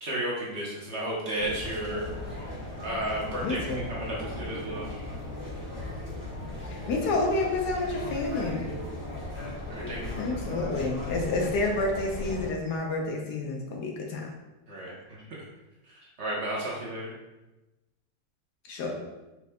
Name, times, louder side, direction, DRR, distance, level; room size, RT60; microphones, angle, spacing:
voice 1, 0.0-2.1 2.8-3.6 3.9-4.9 9.7-10.1 14.7-15.2 16.2-17.1, right 1 dB, 50° right, -5 dB, 1.0 m, -33 dB
sound 1, 1.3-12.5, left 1 dB, 10° right, 1.2 m, -37 dB
voice 2, 3.4-3.9 6.6-8.7 10.1-14.3 18.7-19.0, left 2 dB, 75° left, 1 dB, 1.3 m, -29 dB
4.6 x 4.3 x 2.2 m, 1.1 s
omnidirectional pair, 1.8 m